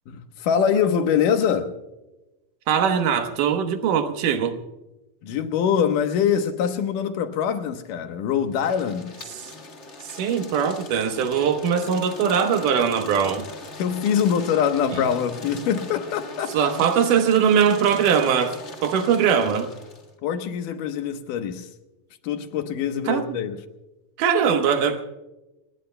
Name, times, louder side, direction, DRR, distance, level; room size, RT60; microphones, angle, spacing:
voice 1, 0.1-1.7 5.2-9.1 13.8-16.7 20.2-21.7 22.2-23.6, left 8 dB, 75° left, 2.7 m, -24 dB
voice 2, 2.7-4.6 9.4-9.5 10.0-13.5 16.5-19.7 23.1-23.4 24.2-25.1, right 7 dB, 75° right, 2.7 m, -21 dB
sound 1, 8.5-20.1, left 2 dB, 40° left, 1.0 m, -40 dB
28.5 x 19.5 x 2.2 m
omnidirectional pair, 3.8 m